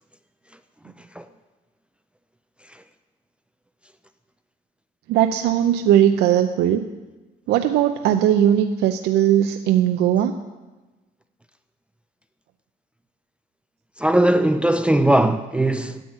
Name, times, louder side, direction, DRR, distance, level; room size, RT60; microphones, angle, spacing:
voice 1, 5.1-6.9 7.5-10.3, right 10 dB, 80° right, 0.6 m, -18 dB
voice 2, 14.0-16.0, right 1 dB, 5° right, 0.4 m, -19 dB
9.9 x 7.9 x 8.4 m
cardioid pair, 110°, 17 cm